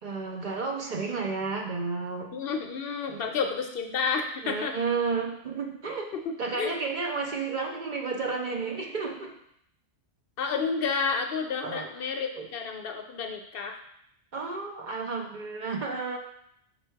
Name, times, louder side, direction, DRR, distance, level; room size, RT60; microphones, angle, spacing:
voice 1, 0.0-2.3 3.1-3.3 4.4-6.1 6.4-9.4 11.6-11.9 12.3-12.5 14.3-16.2, right 4 dB, 50° right, 1 dB, 0.7 m, -32 dB
voice 2, 2.3-4.8 6.1-6.7 10.4-13.8, left 5 dB, 65° left, 4 dB, 0.7 m, -30 dB
5.3 x 2.3 x 4.5 m, 0.71 s
omnidirectional pair, 1.1 m